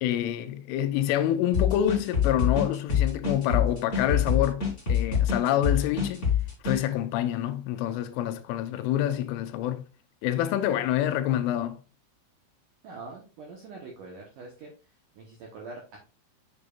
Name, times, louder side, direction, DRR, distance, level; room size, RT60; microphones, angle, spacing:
voice 1, 0.0-6.3 6.6-9.8 10.2-11.8, left 11 dB, 85° left, 3.2 m, -27 dB
sound 1, 1.5-6.8, left 7 dB, 15° left, 3.0 m, -25 dB
voice 2, 12.8-14.7 15.1-16.0, right 3 dB, 75° right, 1.9 m, -43 dB
8.0 x 6.8 x 2.5 m
omnidirectional pair, 5.6 m